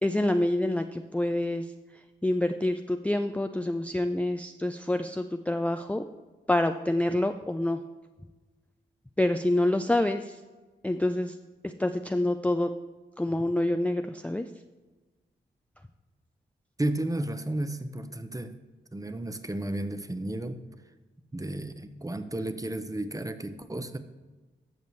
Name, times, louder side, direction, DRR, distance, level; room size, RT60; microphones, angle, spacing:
voice 1, 0.0-1.6 2.2-6.1 6.5-7.8 9.2-10.4 10.8-11.3 11.8-12.7 13.2-14.5, left 1 dB, 5° left, 7 dB, 0.4 m, -27 dB
voice 2, 16.8-18.5 18.9-20.6 21.3-24.0, right 1 dB, 15° right, 10 dB, 0.8 m, -33 dB
12.5 x 6.7 x 3.2 m, 1.3 s
cardioid pair, 45°, 20 cm